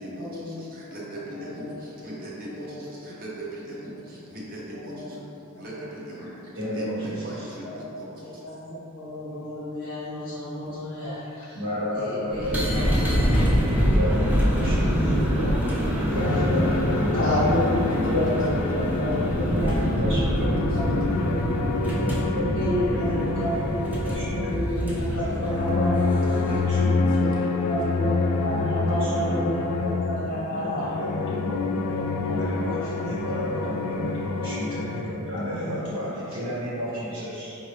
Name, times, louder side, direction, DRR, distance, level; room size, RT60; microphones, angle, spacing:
voice 1, 0.0-5.2 5.5-8.5 18.0-18.2 20.1-20.2 20.7-20.8 26.3-27.5, equal, 40° right, -5 dB, 0.7 m, -39 dB
voice 2, 2.5-2.8 4.9-5.1 7.6-7.8 8.2-8.6 8.9-11.6 11.9-13.2 17.1-20.8 21.1-21.4 22.4-24.0 24.5-26.0 26.8-27.3 27.6-30.9 32.3-33.1 33.5-33.8 35.3-35.6, left 1 dB, 65° left, -9 dB, 0.7 m, -30 dB
voice 3, 6.6-7.5 11.2-13.0 13.5-15.6 15.9-18.0 18.8-18.9 19.6-21.3 21.8-23.7 24.0-24.6 25.1-27.0 27.6-29.9 30.2-30.7 31.0-37.6, equal, 60° right, -9 dB, 1.4 m, -32 dB
sound 1, 12.3-26.7, equal, 10° right, 0.5 m, -25 dB
sound 2, 16.1-19.7 20.0-35.0, left 4 dB, 90° left, 0.3 m, -28 dB
4.6 x 2.5 x 3.3 m, 3.0 s
head